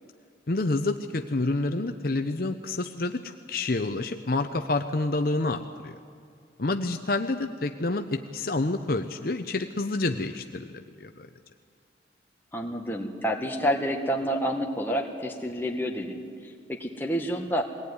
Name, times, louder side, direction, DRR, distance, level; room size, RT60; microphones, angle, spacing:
voice 1, 0.5-6.0 6.6-11.3, left 2 dB, 50° left, 7 dB, 0.8 m, -28 dB
voice 2, 12.5-16.2 16.7-17.6, equal, 10° left, 1 dB, 1.8 m, -28 dB
22.0 x 18.0 x 9.7 m, 2.2 s
head